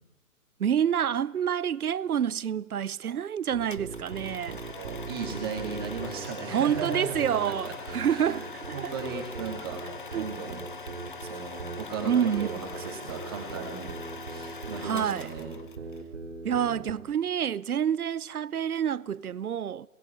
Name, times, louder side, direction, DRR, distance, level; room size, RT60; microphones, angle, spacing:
voice 1, 0.6-4.6 6.5-8.9 10.1-10.2 12.0-12.5 14.8-15.3 16.4-19.9, right 8 dB, 70° right, 0.8 m, -28 dB
sound 1, 3.5-17.0, right 4 dB, 50° right, 3.7 m, -40 dB
sound 2, 3.7-16.0, left 4 dB, 35° left, 0.9 m, -42 dB
voice 2, 4.3-7.1 7.4-7.7 8.1-8.4 8.7-9.8 10.1-10.6 11.2-13.9 14.3-15.6, right 5 dB, 15° right, 2.3 m, -36 dB
29.5 x 20.0 x 8.9 m
hypercardioid pair, 175°, 46 cm